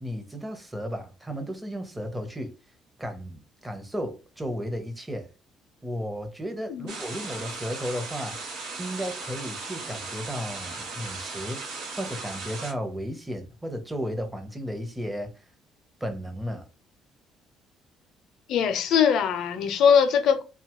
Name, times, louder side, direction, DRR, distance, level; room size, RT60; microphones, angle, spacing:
voice 1, 0.0-2.5 3.0-5.3 5.8-8.4 8.8-15.3 16.0-16.6, equal, 10° right, 0.8 m, -34 dB
sound 1, 6.9-12.7, right 3 dB, 85° right, 1.1 m, -37 dB
voice 2, 18.5-20.4, left 7 dB, 70° left, 0.5 m, -21 dB
2.7 x 2.3 x 2.9 m
supercardioid pair, 80°, 0 cm